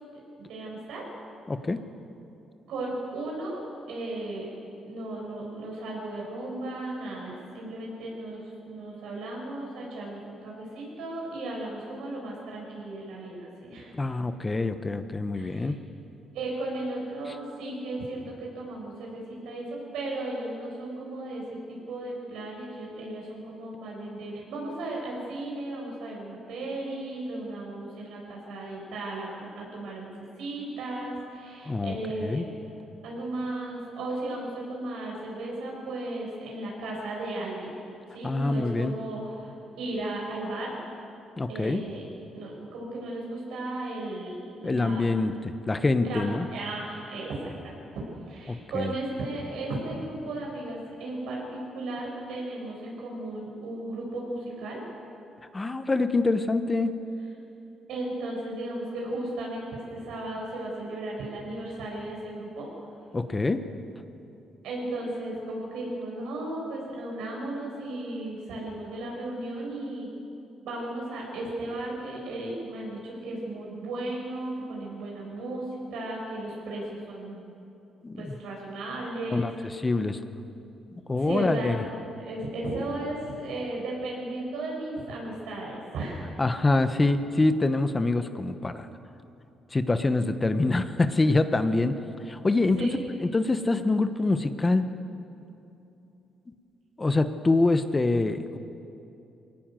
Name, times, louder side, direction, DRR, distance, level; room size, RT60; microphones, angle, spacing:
voice 1, 0.4-1.0 2.7-3.6 3.9-4.5 4.8-13.9 15.4-15.7 16.3-32.5 33.0-37.7 38.1-39.5 39.8-40.7 41.5-45.2 46.1-54.8 57.9-62.7 64.6-70.1 70.6-75.6 75.9-77.4 78.2-79.5 81.2-81.8 82.2-86.3 92.7-93.0, right 2 dB, 85° right, -2 dB, 7.5 m, -35 dB
voice 2, 1.5-1.8 13.9-15.8 31.7-32.0 32.2-32.4 38.2-38.9 41.4-41.8 44.6-46.4 48.5-48.9 55.5-56.9 63.1-63.6 78.0-78.3 79.3-79.5 79.8-80.2 81.1-81.8 86.4-88.9 89.7-92.0 92.3-92.9 93.2-94.8 97.0-98.6, left 2 dB, 25° left, 10 dB, 1.1 m, -25 dB
22.5 x 18.0 x 7.8 m, 2.8 s
cardioid pair, 90°, 0 cm